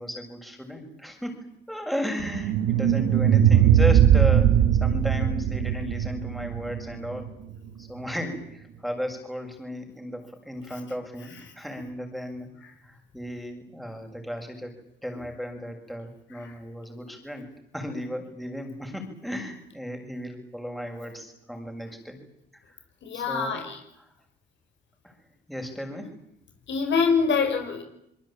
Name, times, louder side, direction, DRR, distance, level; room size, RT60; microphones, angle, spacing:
voice 1, 0.0-1.4 1.7-7.3 7.8-12.5 12.8-14.7 15.0-17.5 17.7-22.2 22.6-22.8 23.1-23.6 24.0-24.1 25.0-25.2 25.5-26.2, equal, ahead, 3 dB, 6.9 m, -35 dB
sound 1, 2.2-7.3, right 9 dB, 90° right, 1.8 m, -20 dB
voice 2, 23.0-23.8 26.7-27.8, left 5 dB, 70° left, 5 dB, 6.3 m, -25 dB
25.5 x 22.5 x 9.0 m, 0.78 s
cardioid pair, 90°, 20 cm